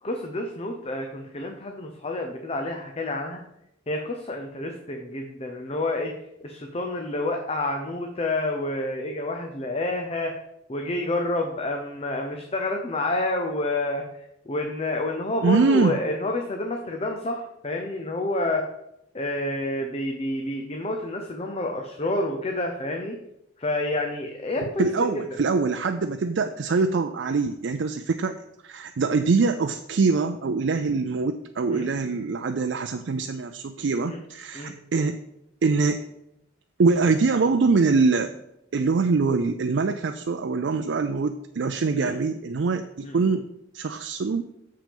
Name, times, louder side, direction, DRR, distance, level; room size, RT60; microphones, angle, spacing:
voice 1, 0.0-3.4 3.9-6.1 6.4-10.3 10.7-18.6 19.1-23.2 23.6-25.4 31.7-31.9 34.0-34.2 34.5-34.8 41.9-42.2 43.0-43.3, left 2 dB, 35° left, 3 dB, 0.8 m, -29 dB
voice 2, 15.4-16.0 24.8-35.2 35.6-36.0 36.8-38.3 38.7-43.5 43.7-44.5, right 4 dB, 70° right, 6 dB, 0.4 m, -24 dB
6.9 x 6.0 x 5.3 m, 0.81 s
head